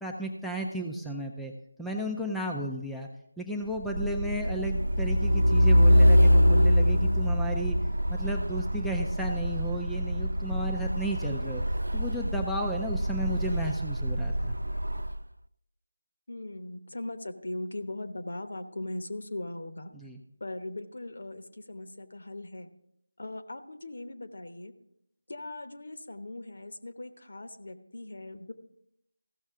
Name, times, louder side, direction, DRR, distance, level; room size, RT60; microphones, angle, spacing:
voice 1, 0.0-1.5 1.8-3.1 3.4-7.8 8.1-11.6 11.9-14.6 20.0-20.2, right 1 dB, ahead, -2 dB, 0.4 m, -34 dB
Truck, 3.8-15.2, equal, 85° right, 0.4 m, -24 dB
voice 2, 16.3-19.9 20.4-22.7 23.2-24.7 25.3-28.5, left 2 dB, 60° left, 8 dB, 1.0 m, -39 dB
15.0 x 6.3 x 3.6 m, 0.79 s
figure-of-eight pair, 165°, 0 cm